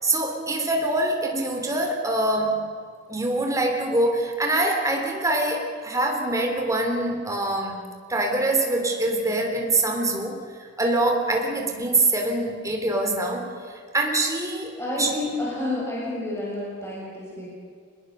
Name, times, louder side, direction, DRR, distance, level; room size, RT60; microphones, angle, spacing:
voice 1, 0.0-2.7 3.1-10.4 10.8-13.5 13.9-14.7 15.0-15.1, right 2 dB, 15° right, 2 dB, 3.6 m, -24 dB
voice 2, 14.7-17.5, left 1 dB, 15° left, -6 dB, 6.9 m, -30 dB
25.5 x 21.0 x 6.6 m, 2.1 s
head